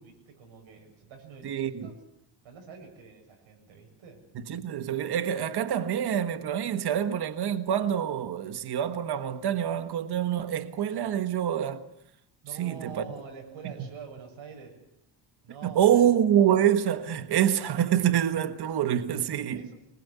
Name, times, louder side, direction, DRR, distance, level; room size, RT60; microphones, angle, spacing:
voice 1, 0.0-2.0 2.4-4.3 12.4-14.8 15.4-16.1 19.5-19.7, right 6 dB, 75° right, 7.5 m, -46 dB
voice 2, 1.4-1.9 4.3-11.8 12.6-13.0 15.6-19.7, right 10 dB, 50° right, 1.5 m, -26 dB
25.5 x 20.5 x 8.4 m
cardioid pair, 155°, 48 cm